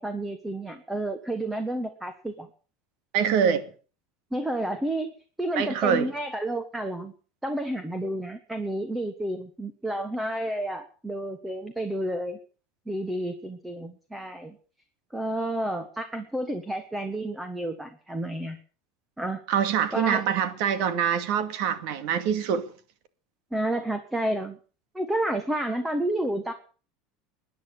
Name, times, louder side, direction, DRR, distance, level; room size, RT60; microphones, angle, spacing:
voice 1, 0.0-2.5 4.3-5.1 5.4-7.1 7.4-12.4 12.9-14.6 15.1-18.6 19.2-19.4 19.9-20.2 23.5-24.6 24.9-26.5, right 1 dB, 5° right, 1.3 m, -30 dB
voice 2, 3.1-3.7 5.6-6.1 19.5-22.6, right 8 dB, 55° right, 2.4 m, -25 dB
21.0 x 10.0 x 6.5 m
supercardioid pair, 165°, 0 cm